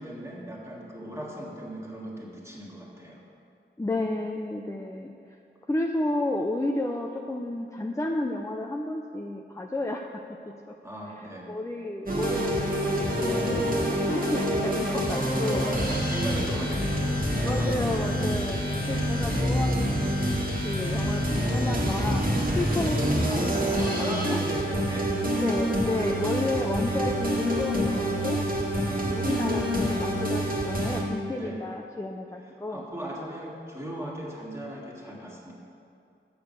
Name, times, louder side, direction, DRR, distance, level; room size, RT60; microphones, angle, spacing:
voice 1, 0.0-3.2 3.9-4.1 10.8-11.5 15.4-17.9 23.9-25.3 26.1-26.4 28.8-29.6 31.3-31.6 32.7-35.5, right 1 dB, 15° right, -4 dB, 1.9 m, -38 dB
voice 2, 3.8-5.4 5.7-10.2 10.7-10.8 11.2-15.7 16.5-16.6 17.4-24.4 25.3-28.4 29.1-32.9, left 2 dB, 15° left, 2 dB, 0.5 m, -32 dB
sound 1, 12.1-31.0, equal, 45° right, 1.6 m, -26 dB
8.0 x 6.9 x 6.8 m, 2.5 s
wide cardioid pair, 80°, 20 cm